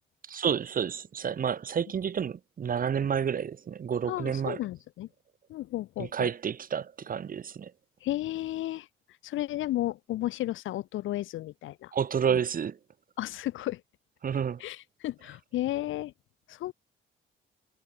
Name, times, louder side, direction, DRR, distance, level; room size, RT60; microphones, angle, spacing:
voice 1, 0.3-4.6 6.0-7.7 11.9-12.8 14.2-14.6, right 7 dB, 45° right, 1.3 m, -30 dB
voice 2, 4.1-5.1 5.5-6.3 8.0-8.9 9.2-11.9 12.3-12.4 13.2-13.8 14.6-16.1 16.5-16.7, left 15 dB, 80° left, 0.8 m, -33 dB
cardioid pair, 90°, 20 cm